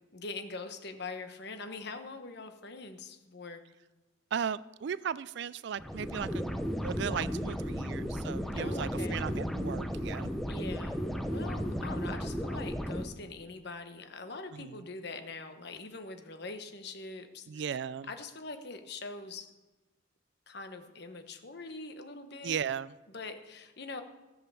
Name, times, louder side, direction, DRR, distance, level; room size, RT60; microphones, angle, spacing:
voice 1, 0.1-3.6 8.6-9.2 10.5-17.8 18.1-19.5 20.5-22.6 23.1-24.0, left 3 dB, 55° left, 8 dB, 1.2 m, -43 dB
voice 2, 4.3-6.5 6.8-10.3 14.5-14.9 17.5-18.1 22.4-23.0, right 7 dB, 55° right, 19 dB, 0.3 m, -36 dB
sound 1, 5.8-13.0, equal, ahead, 0.7 m, -34 dB
14.5 x 7.8 x 7.0 m, 1.1 s
head